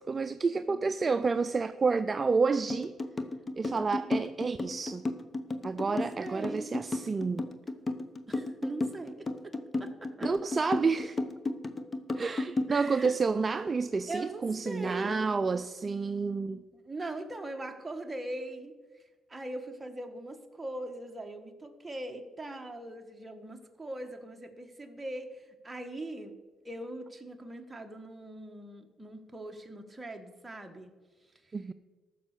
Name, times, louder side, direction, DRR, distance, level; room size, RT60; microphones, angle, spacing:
voice 1, 0.0-2.9 3.6-5.0 5.6-7.5 10.2-11.2 12.1-16.6 31.5-31.7, right 4 dB, 30° right, 0.4 m, -29 dB
sound 1, 2.7-13.2, left 2 dB, 30° left, 0.9 m, -33 dB
voice 2, 5.9-6.7 8.3-9.5 9.8-10.3 12.7-13.1 14.1-15.1 16.7-18.7 19.3-26.4 26.6-30.9, right 1 dB, 15° right, 1.5 m, -41 dB
14.0 x 6.2 x 6.6 m
cardioid pair, 90°, 0 cm